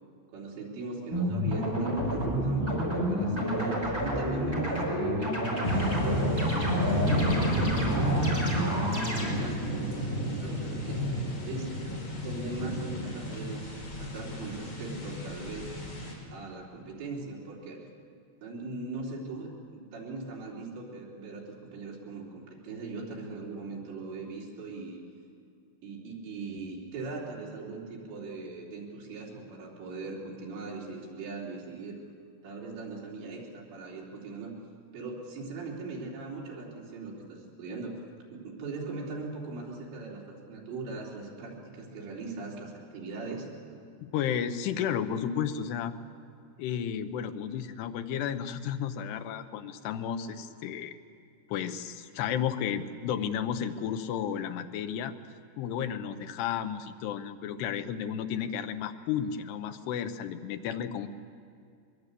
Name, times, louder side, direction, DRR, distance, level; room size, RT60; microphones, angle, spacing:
voice 1, 0.3-6.3 7.0-11.8 12.1-15.7 16.3-17.8 18.4-25.0 25.8-32.0 32.4-34.5 34.9-38.0 38.3-43.8, right 3 dB, 85° right, -4 dB, 6.0 m, -40 dB
sound 1, 1.1-9.3, equal, 5° right, 4.8 m, -29 dB
sound 2, 5.6-16.1, equal, 40° left, 5.6 m, -31 dB
voice 2, 44.0-45.9 46.6-51.0 51.5-55.1 55.6-61.1, left 8 dB, 75° left, 8 dB, 2.9 m, -32 dB
22.5 x 22.0 x 8.4 m, 2.3 s
omnidirectional pair, 5.0 m